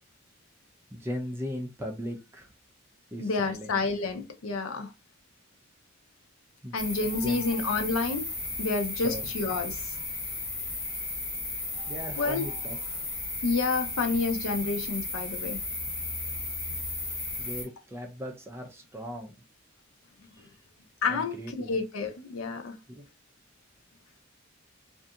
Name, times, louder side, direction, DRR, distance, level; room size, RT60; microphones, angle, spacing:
voice 1, 0.9-2.5 3.1-3.8 6.6-6.8 7.2-7.5 9.0-9.3 10.7-10.9 11.9-13.0 17.4-19.3 20.4-20.5 21.1-21.7 22.9-23.0, equal, 10° right, 0.4 m, -38 dB
voice 2, 3.2-4.9 6.7-8.3 8.6-9.9 12.2-12.4 13.4-15.6 21.0-22.7, left 4 dB, 80° left, 0.5 m, -29 dB
sound 1, 6.8-17.6, left 3 dB, 35° left, 1.5 m, -35 dB
2.6 x 2.5 x 2.3 m
head